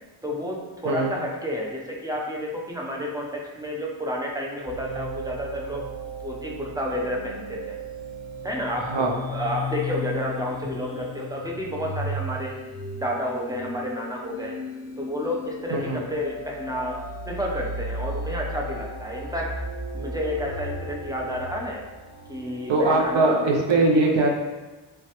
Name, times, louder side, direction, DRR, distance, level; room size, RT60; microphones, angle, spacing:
voice 1, 0.2-5.9 6.2-7.8 8.4-12.6 13.0-14.6 15.0-17.0 17.3-19.5 19.9-21.8 22.3-23.4, equal, 10° right, -2 dB, 0.4 m, -30 dB
sound 1, 4.7-23.0, equal, 35° right, 0.9 m, -35 dB
voice 2, 8.8-9.1 15.7-16.0 22.7-24.3, right 2 dB, 65° right, 0 dB, 0.5 m, -21 dB
3.3 x 2.1 x 2.8 m, 1.2 s
wide cardioid pair, 50°, 49 cm